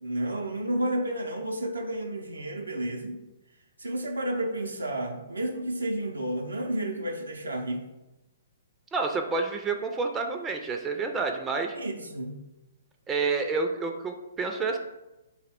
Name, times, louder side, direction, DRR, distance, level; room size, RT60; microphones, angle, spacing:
voice 1, 0.0-3.2 3.8-7.9 11.7-12.4, right 1 dB, 90° right, 2 dB, 0.4 m, -31 dB
voice 2, 8.9-11.8 13.1-14.8, right 4 dB, 15° right, 4 dB, 0.3 m, -29 dB
3.6 x 2.1 x 4.2 m, 0.99 s
hypercardioid pair, 125°, 0 cm